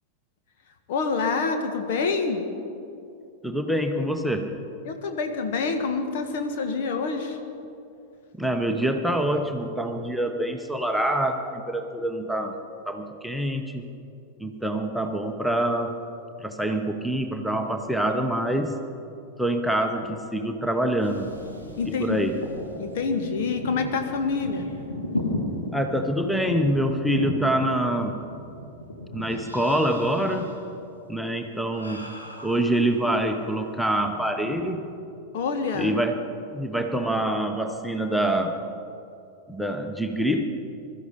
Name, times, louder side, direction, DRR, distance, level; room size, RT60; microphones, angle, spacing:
voice 1, 0.9-2.4 4.8-7.4 21.8-22.2 22.8-24.7 35.3-35.9, left 4 dB, 55° left, 6 dB, 1.4 m, -27 dB
voice 2, 3.4-4.6 8.3-12.6 12.8-13.9 14.4-16.0 16.4-18.8 19.4-21.3 21.9-22.4 25.7-28.2 29.1-30.6 31.1-32.1 32.4-34.9 35.8-38.6 39.5-40.4, right 1 dB, ahead, 6 dB, 1.0 m, -26 dB
sound 1, 21.0-33.4 33.8-34.6, left 1 dB, 85° left, 2.4 m, -36 dB
21.0 x 13.0 x 5.2 m, 2.6 s
figure-of-eight pair, 90°, 0 cm